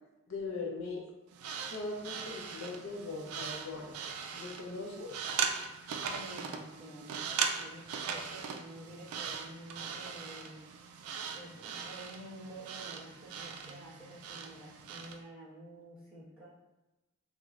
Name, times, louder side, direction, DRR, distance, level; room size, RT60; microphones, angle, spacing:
voice 1, 0.3-1.0 1.7-3.9 4.3-5.2, left 3 dB, 65° left, -1 dB, 0.7 m, -40 dB
sound 1, 1.3-15.2, right 6 dB, 80° right, 0.3 m, -39 dB
voice 2, 6.1-10.6 11.3-16.5, right 1 dB, 5° right, -12 dB, 1.3 m, -50 dB
3.0 x 2.9 x 2.4 m, 1.1 s
head